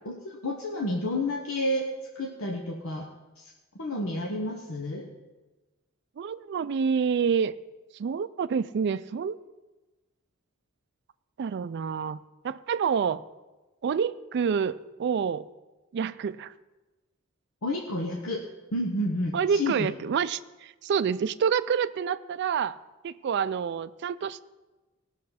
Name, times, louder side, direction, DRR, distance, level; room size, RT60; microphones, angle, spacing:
voice 1, 0.0-3.1 3.4-3.5 3.8-5.1 17.6-19.9, left 1 dB, 85° left, 0 dB, 1.2 m, -30 dB
voice 2, 6.2-7.5 7.9-9.4 11.4-13.2 13.8-15.4 15.9-16.5 19.3-22.8 23.0-24.4, right 6 dB, 55° right, 12 dB, 0.4 m, -28 dB
18.0 x 6.3 x 5.7 m, 1.1 s
head